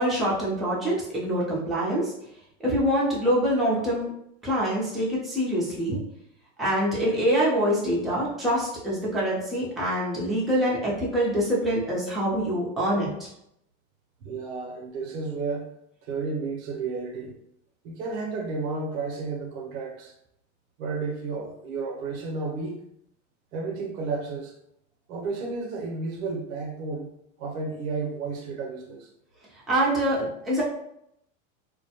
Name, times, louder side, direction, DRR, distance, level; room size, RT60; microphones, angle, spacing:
voice 1, 0.0-2.1 2.6-4.1 4.4-6.0 6.6-13.3 29.7-30.6, equal, ahead, -7 dB, 0.6 m, -25 dB
voice 2, 14.2-15.7 16.0-17.3 17.8-20.1 20.8-22.8 23.5-24.5 25.1-27.1 27.4-29.1, right 4 dB, 75° right, 2 dB, 0.8 m, -32 dB
2.4 x 2.2 x 2.8 m, 0.76 s
supercardioid pair, 125°, 41 cm